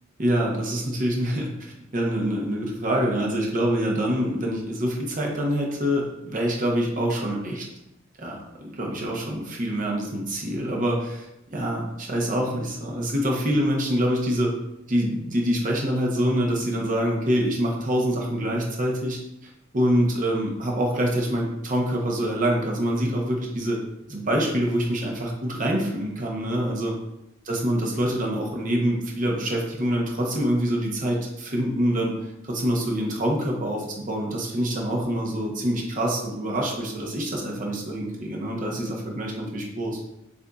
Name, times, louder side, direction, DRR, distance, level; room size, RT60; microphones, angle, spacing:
voice 1, 0.2-7.7 8.2-14.5 14.9-19.2 19.7-23.8 24.1-26.9 27.4-40.0, equal, 45° right, -1 dB, 0.8 m, -25 dB
6.4 x 2.6 x 2.3 m, 0.89 s
head